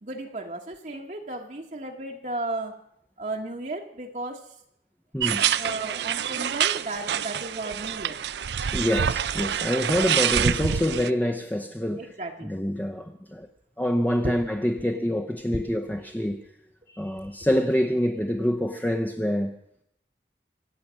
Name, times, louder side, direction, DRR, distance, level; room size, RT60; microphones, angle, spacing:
voice 1, 0.0-2.8 3.2-4.5 5.6-8.2 12.0-12.5 14.2-14.4 15.5-15.6 17.2-17.3, right 2 dB, 40° right, 1.1 m, -34 dB
voice 2, 5.1-5.5 8.7-12.1 12.5-13.5 13.8-16.4 16.9-19.6, equal, 10° left, 0.7 m, -26 dB
sound 1, 5.2-11.1, right 8 dB, 75° right, 0.5 m, -26 dB
24.5 x 8.4 x 6.2 m
head